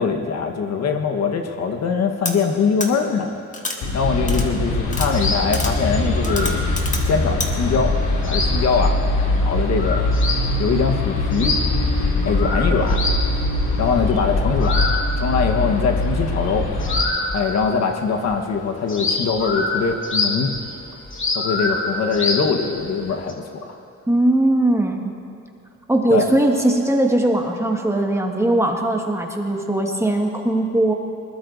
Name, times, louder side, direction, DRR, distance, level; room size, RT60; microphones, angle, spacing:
voice 1, 0.0-3.3 3.9-6.6 7.0-7.9 8.2-9.0 9.4-10.1 10.6-11.5 12.2-13.0 13.8-14.8 15.2-16.7 17.3-20.5 21.3-23.8 26.1-26.3, left 5 dB, 60° left, 4 dB, 1.2 m, -22 dB
sound 1, 2.2-2.3 2.8-2.9 3.5-3.8 4.3-4.4 4.9-5.1 5.5-5.7 6.2-7.0 7.4-7.5, left 2 dB, 25° left, 1.8 m, -27 dB
sound 2, 3.8-17.0, left 2 dB, 80° left, 2.7 m, -22 dB
sound 3, 4.7-17.9 18.1-23.3, left 2 dB, 40° left, 2.4 m, -28 dB
voice 2, 24.1-25.1 25.9-30.9, right 1 dB, 10° right, 1 dB, 1.6 m, -19 dB
21.0 x 20.5 x 2.6 m, 2.7 s
cardioid pair, 90°, 30 cm